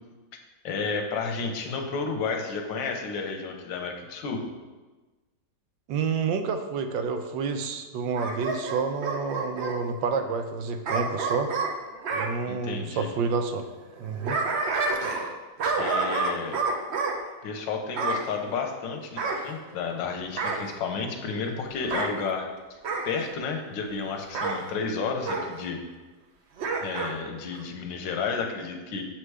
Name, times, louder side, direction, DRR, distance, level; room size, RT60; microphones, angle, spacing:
voice 1, 0.6-4.4 12.5-13.1 15.8-16.6 17.4-19.2 19.4-22.5 23.0-25.8 26.8-29.0, left 5 dB, 90° left, 4 dB, 1.5 m, -31 dB
voice 2, 5.9-11.5 12.1-13.6 14.0-14.4, right 5 dB, 90° right, 7 dB, 1.3 m, -29 dB
Bark / Growling, 8.1-9.8 10.8-12.3 13.9-15.3 15.6-17.2 18.0-18.3 19.2-20.0 20.4-20.7 21.8-22.1 22.8-23.1 24.3-24.6 25.3-25.5 26.6-27.1 27.5-27.6, right 3 dB, 60° right, 0.7 m, -28 dB
6.9 x 4.4 x 4.7 m, 1.2 s
omnidirectional pair, 1.9 m